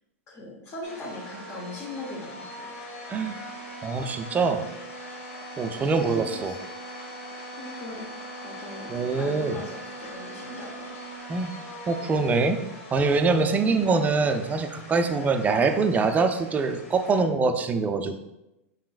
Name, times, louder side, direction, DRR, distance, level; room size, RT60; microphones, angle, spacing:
voice 1, 0.3-2.7 5.6-6.6 7.6-11.0 13.6-13.8, left 2 dB, 40° left, -4 dB, 1.1 m, -40 dB
sound 1, 0.8-17.2, equal, 70° left, 1.4 m, -41 dB
voice 2, 3.8-4.6 5.6-6.5 8.9-9.6 11.3-11.5 11.9-12.6 12.9-18.2, right 4 dB, 20° right, 7 dB, 0.4 m, -24 dB
5.6 x 3.7 x 2.4 m, 0.93 s
hypercardioid pair, 95°, 8 cm